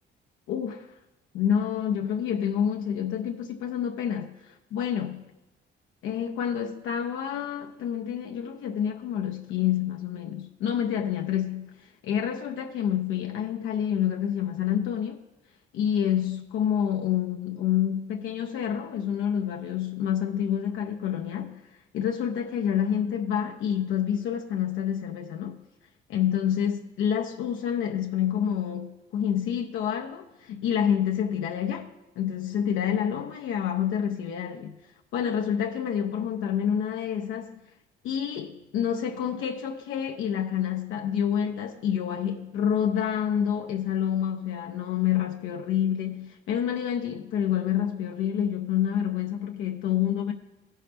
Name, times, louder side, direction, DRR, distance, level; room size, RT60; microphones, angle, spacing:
voice 1, 0.5-0.9 1.3-5.2 6.0-15.2 15.7-21.6 21.9-25.6 26.1-31.9 32.2-34.8 35.1-37.6 38.0-50.3, left 9 dB, 80° left, 0.6 m, -28 dB
15.5 x 5.4 x 3.4 m
cardioid pair, 90°, 20 cm